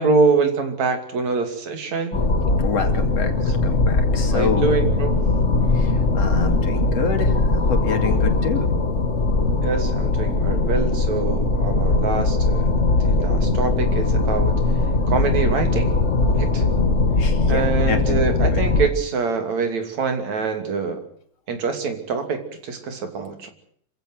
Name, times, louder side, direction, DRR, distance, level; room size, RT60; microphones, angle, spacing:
voice 1, 0.0-2.2 4.3-5.2 9.6-12.7 13.0-14.5 15.1-15.9 16.3-16.6 17.5-21.0 21.5-23.5, right 4 dB, 65° right, 6 dB, 4.1 m, -24 dB
sound 1, 2.1-18.9, left 3 dB, 30° left, 1.4 m, -20 dB
voice 2, 2.6-4.8 5.7-8.7 17.2-18.2 18.5-18.6, left 5 dB, 55° left, 5 dB, 3.8 m, -28 dB
27.0 x 15.5 x 8.0 m, 0.63 s
omnidirectional pair, 3.5 m